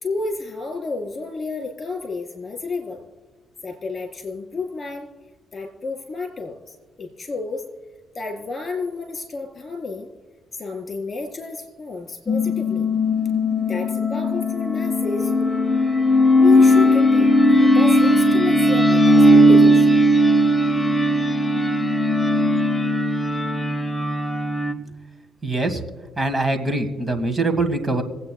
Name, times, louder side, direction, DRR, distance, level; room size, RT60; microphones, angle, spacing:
voice 1, 0.0-3.0 3.6-5.1 5.5-7.6 8.1-10.1 10.5-12.9 13.7-15.3 16.4-20.0, left 3 dB, 35° left, 3 dB, 4.2 m, -31 dB
sound 1, 12.3-24.7, left 1 dB, 5° left, 0.9 m, -17 dB
voice 2, 25.4-25.8 26.2-28.0, right 2 dB, 20° right, 7 dB, 1.6 m, -23 dB
26.0 x 8.9 x 2.2 m, 1.4 s
cardioid pair, 90°, 0 cm